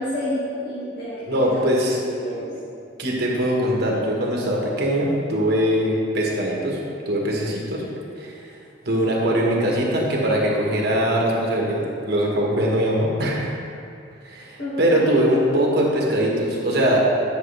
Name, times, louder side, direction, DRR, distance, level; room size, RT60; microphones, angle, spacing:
voice 1, 0.0-2.5 14.6-15.2, left 1 dB, 50° left, -11 dB, 2.0 m, -30 dB
voice 2, 1.3-2.0 3.0-7.9 8.2-8.3 8.8-13.5 14.2-17.0, equal, 55° right, -2 dB, 1.4 m, -21 dB
10.5 x 6.6 x 3.4 m, 2.5 s
head